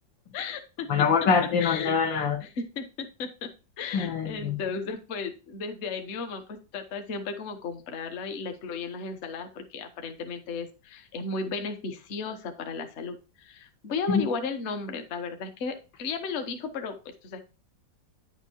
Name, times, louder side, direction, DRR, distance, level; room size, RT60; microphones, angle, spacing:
voice 1, 0.3-0.9 1.6-2.0 2.4-3.5 3.8-17.4, left 4 dB, 45° left, 6 dB, 1.1 m, -35 dB
voice 2, 0.9-2.4 3.9-4.6 14.1-14.2, left 6 dB, 80° left, 5 dB, 2.0 m, -24 dB
9.9 x 6.3 x 2.8 m, 0.31 s
omnidirectional pair, 2.0 m